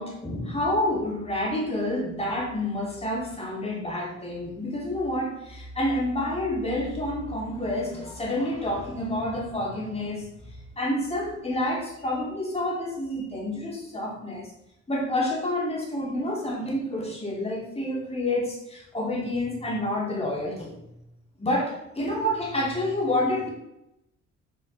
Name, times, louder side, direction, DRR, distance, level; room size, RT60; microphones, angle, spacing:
voice 1, 0.0-10.3 10.8-14.5 14.9-20.7 21.4-23.5, left 1 dB, 20° left, -3 dB, 3.0 m, -28 dB
8.4 x 4.8 x 4.2 m, 0.83 s
cardioid pair, 90°, 30 cm